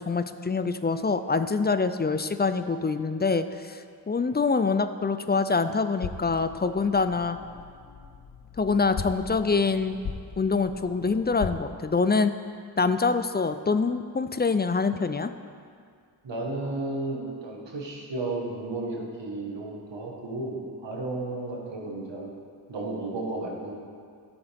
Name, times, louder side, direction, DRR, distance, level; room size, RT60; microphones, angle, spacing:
voice 1, 0.0-7.4 8.6-10.0 10.4-12.3 12.8-15.3, left 4 dB, 25° left, 10 dB, 0.4 m, -25 dB
sound 1, 6.0-11.6, left 5 dB, 55° left, 0.8 m, -39 dB
voice 2, 16.2-22.3 22.7-23.8, right 2 dB, 80° right, -2 dB, 1.6 m, -33 dB
12.5 x 7.0 x 3.5 m, 2.2 s
cardioid pair, 45°, 43 cm